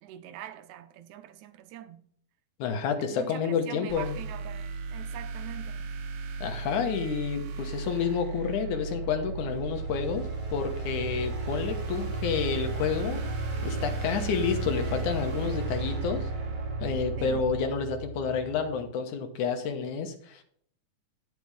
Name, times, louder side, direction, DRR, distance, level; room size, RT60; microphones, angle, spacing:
voice 1, 0.0-2.0 3.0-5.8 17.2-17.4, right 12 dB, 85° right, 2.0 m, -44 dB
voice 2, 2.6-4.2 6.4-13.2 13.6-16.2 16.8-20.4, left 6 dB, 85° left, 2.6 m, -30 dB
sound 1, 3.9-17.6, right 4 dB, 65° right, 1.6 m, -36 dB
sound 2, 8.7-18.9, right 2 dB, 25° right, 1.2 m, -36 dB
10.0 x 6.0 x 4.8 m
omnidirectional pair, 3.4 m